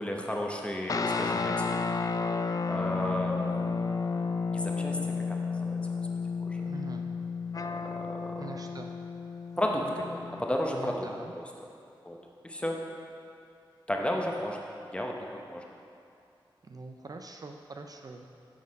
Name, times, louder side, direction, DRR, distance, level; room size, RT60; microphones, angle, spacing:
voice 1, 0.0-1.8 2.7-3.8 4.5-5.0 5.3-5.8 6.4-6.6 7.6-8.4 9.6-11.1 11.4-11.5 12.0-12.2 12.4-12.8 13.9-14.6 14.9-15.6, left 1 dB, 10° left, 0 dB, 0.8 m, -33 dB
sound 1, 0.9-10.6, left 4 dB, 45° left, 0.4 m, -32 dB
voice 2, 6.6-7.1 8.4-8.9 10.7-11.3 16.6-18.3, right 3 dB, 45° right, 4 dB, 0.4 m, -43 dB
7.4 x 4.0 x 5.2 m, 2.6 s
cardioid pair, 60°, 9 cm